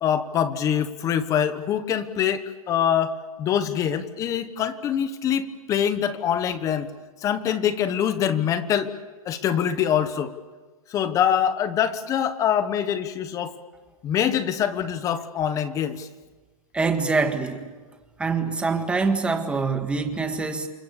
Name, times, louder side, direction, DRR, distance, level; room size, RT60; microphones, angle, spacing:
voice 1, 0.0-6.9 7.2-8.9 9.2-10.3 10.9-13.5 14.0-16.1, left 9 dB, 20° left, 12 dB, 1.2 m, -24 dB
voice 2, 16.7-17.7 18.2-20.7, right 4 dB, 5° right, 6 dB, 1.7 m, -24 dB
29.0 x 25.0 x 6.9 m, 1.3 s
hypercardioid pair, 160°, 18 cm